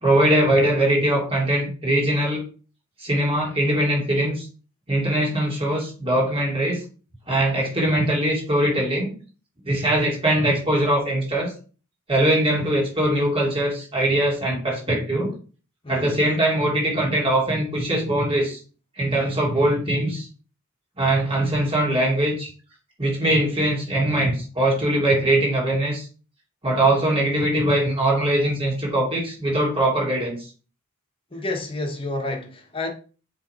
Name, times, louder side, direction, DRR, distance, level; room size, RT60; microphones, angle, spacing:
voice 1, 0.0-2.4 3.0-4.5 4.9-6.8 7.3-9.1 9.6-11.5 12.1-15.3 15.9-18.6 19.0-20.3 21.0-22.5 23.0-26.1 26.6-30.4, right 1 dB, 25° right, 2.7 m, -21 dB
voice 2, 15.8-16.4 31.3-32.9, left 2 dB, 25° left, 1.3 m, -30 dB
7.2 x 3.4 x 4.3 m
head